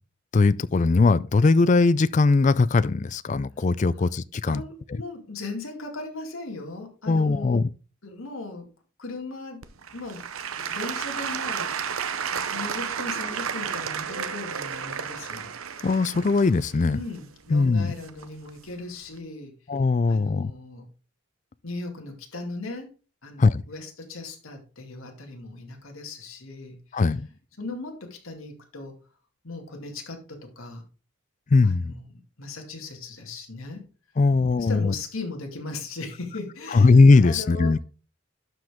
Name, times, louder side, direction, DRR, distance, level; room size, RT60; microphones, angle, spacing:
voice 1, 0.3-4.6 7.1-7.7 15.8-17.0 17.5-17.9 19.7-20.5 23.4-23.6 26.9-27.3 31.5-31.9 34.2-34.9 36.7-37.8, left 3 dB, 35° left, 0.3 m, -20 dB
voice 2, 4.5-7.6 8.0-8.7 9.0-9.6 9.9-10.2 10.5-12.1 12.3-15.5 16.8-19.5 20.1-20.9 21.6-22.9 23.2-27.0 27.6-29.0 29.4-30.8 31.6-33.8 34.6-37.8, left 3 dB, 75° left, 2.3 m, -38 dB
Applause / Crowd, 9.6-18.5 19.1-19.2, right 7 dB, 80° right, 0.7 m, -32 dB
12.0 x 5.1 x 3.6 m
head